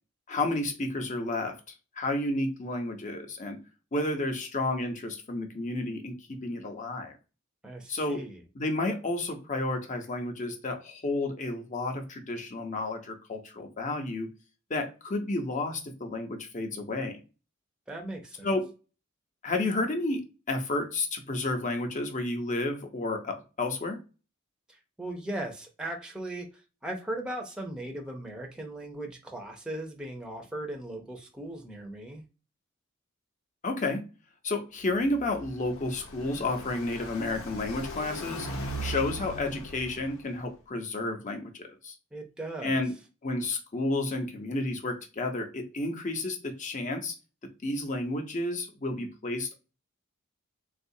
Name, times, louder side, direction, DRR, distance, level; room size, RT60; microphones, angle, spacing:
voice 1, 0.3-3.6 3.9-6.1 6.4-7.2 7.9-8.2 8.5-14.3 14.7-17.2 18.4-18.7 19.4-24.0 33.6-34.0 34.4-38.5 38.8-41.9 42.6-42.9 43.2-47.1 47.6-49.5, left 2 dB, 35° left, 0.7 m, -31 dB
voice 2, 7.6-8.4 17.9-18.5 24.7-32.2 42.1-42.8, right 1 dB, 5° right, 0.6 m, -38 dB
Car passing by, 34.9-40.5, equal, 80° left, 0.8 m, -39 dB
3.8 x 2.4 x 2.7 m
head